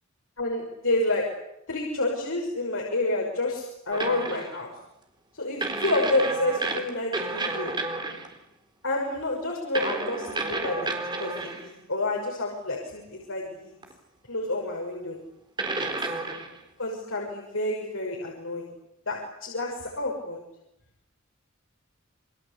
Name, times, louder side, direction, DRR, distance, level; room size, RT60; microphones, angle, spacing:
voice 1, 0.4-1.2 1.7-4.7 5.3-7.7 8.8-10.9 11.2-13.7 14.3-15.2 15.8-16.2 16.8-18.7 19.1-20.4, left 2 dB, 75° left, -1 dB, 6.1 m, -29 dB
sound 1, 3.9-4.6 5.6-8.3 9.7-11.7 13.8-13.9 15.6-16.6, right 2 dB, 20° right, 4.2 m, -31 dB
29.0 x 24.5 x 8.4 m, 0.83 s
head